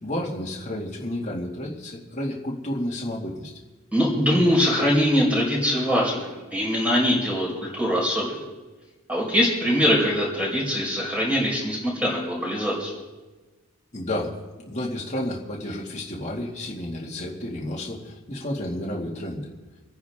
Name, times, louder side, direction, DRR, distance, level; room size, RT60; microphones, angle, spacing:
voice 1, 0.0-3.5 13.9-14.4 14.6-19.5, left 1 dB, 30° left, -3 dB, 2.3 m, -31 dB
voice 2, 3.9-8.4 9.1-12.9, equal, 5° right, -4 dB, 4.8 m, -22 dB
27.5 x 10.5 x 3.7 m, 1.2 s
head